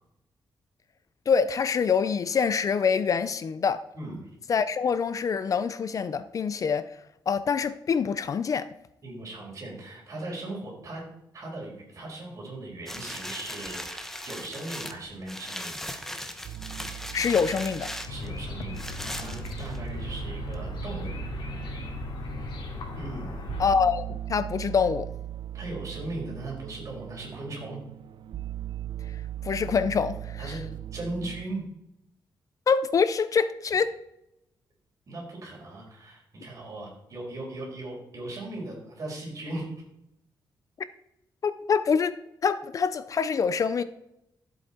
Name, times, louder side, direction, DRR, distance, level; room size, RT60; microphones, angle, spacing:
voice 1, 1.3-3.8 4.5-6.9 7.3-8.7 17.1-17.9 23.6-25.1 29.4-30.4 32.7-33.9 41.4-42.2 42.4-43.8, left 6 dB, 45° left, 0.5 m, -25 dB
voice 2, 3.9-4.3 9.0-11.0 11.3-15.8 18.1-18.8 19.0-21.1 22.9-23.5 25.5-27.8 30.4-30.6 30.9-31.6 35.1-39.7, right 2 dB, 40° right, 4.9 m, -38 dB
sound 1, 12.9-20.0 20.5-20.6, left 1 dB, 5° left, 1.0 m, -38 dB
sound 2, 16.4-31.5, right 12 dB, 75° right, 0.6 m, -39 dB
sound 3, 18.1-23.7, left 3 dB, 75° left, 2.8 m, -37 dB
13.5 x 8.0 x 4.5 m
wide cardioid pair, 145°, 8 cm